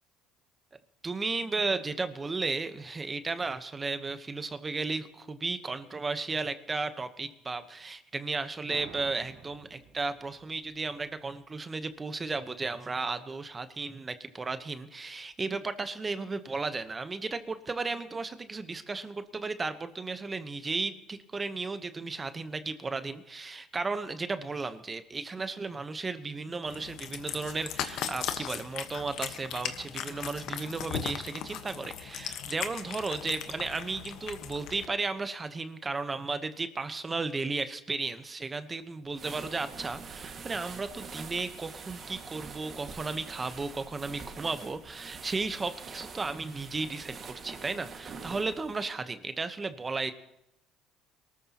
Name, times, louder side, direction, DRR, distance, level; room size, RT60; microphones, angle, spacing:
voice 1, 1.0-50.1, right 3 dB, 25° right, 10 dB, 1.0 m, -34 dB
sound 1, 8.7-12.0, right 7 dB, 65° right, 1.5 m, -52 dB
Cat, 26.7-34.9, left 9 dB, 65° left, 1.2 m, -38 dB
sound 2, 39.1-48.9, right 5 dB, 40° right, 1.9 m, -45 dB
22.5 x 13.5 x 3.0 m, 0.83 s
supercardioid pair, 95°, 0 cm